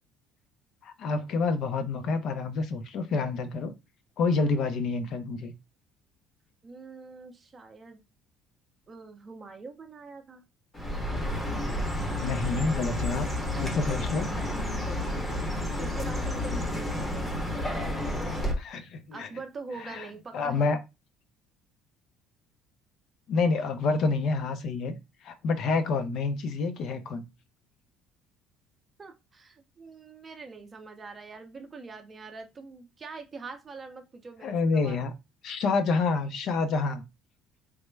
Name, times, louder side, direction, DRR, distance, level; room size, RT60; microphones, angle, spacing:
voice 1, 0.8-3.7 4.2-5.5 12.2-13.3 13.6-14.3 18.6-19.3 19.8-20.1 20.3-20.8 23.3-25.0 25.2-27.2 34.4-35.1 35.4-37.0, left 4 dB, 50° left, 0.4 m, -28 dB
voice 2, 6.6-8.0 8.9-10.4 15.8-17.7 19.1-20.8 29.0-35.0, right 4 dB, 20° right, 0.5 m, -44 dB
Chirp tweet, 10.7-18.5, left 1 dB, 15° left, 0.7 m, -30 dB
3.2 x 2.0 x 3.1 m
cardioid pair, 160°, 0 cm